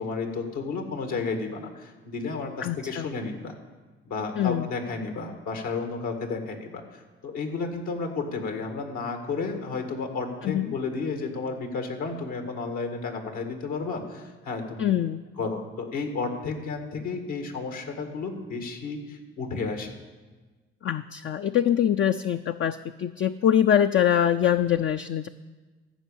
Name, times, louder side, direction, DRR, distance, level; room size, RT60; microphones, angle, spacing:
voice 1, 0.0-3.5 4.1-14.9 15.4-19.9, left 4 dB, 75° left, 5 dB, 2.0 m, -32 dB
voice 2, 2.6-3.1 4.4-4.7 10.4-10.7 14.8-15.2 20.8-25.3, left 10 dB, 40° left, 8 dB, 0.5 m, -24 dB
14.0 x 5.3 x 8.4 m, 1.3 s
supercardioid pair, 55°, 30 cm